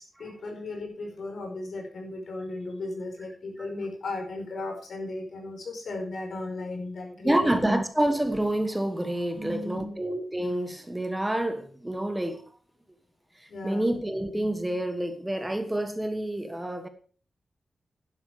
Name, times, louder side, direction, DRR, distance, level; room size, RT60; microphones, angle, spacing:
voice 1, 0.0-7.5 9.3-10.0 13.5-13.9, left 2 dB, 75° left, 4.9 m, -36 dB
voice 2, 7.2-12.4 13.4-16.9, right 1 dB, 10° right, 1.4 m, -28 dB
12.0 x 11.0 x 4.9 m
wide cardioid pair, 150°, 0 cm